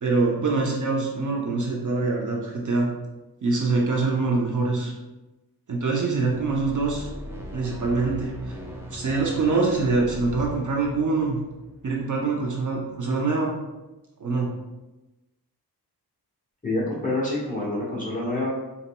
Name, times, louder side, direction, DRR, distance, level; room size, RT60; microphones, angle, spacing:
voice 1, 0.0-2.9 3.4-4.9 5.7-7.1 7.5-8.3 8.9-11.4 11.8-13.5 14.2-14.5, right 3 dB, 50° right, -1 dB, 0.7 m, -24 dB
sound 1, 6.1-12.4, equal, 5° right, 0.6 m, -38 dB
voice 2, 16.6-18.5, left 2 dB, 20° left, -6 dB, 1.4 m, -27 dB
4.1 x 4.0 x 2.2 m, 1.0 s
wide cardioid pair, 100°, 38 cm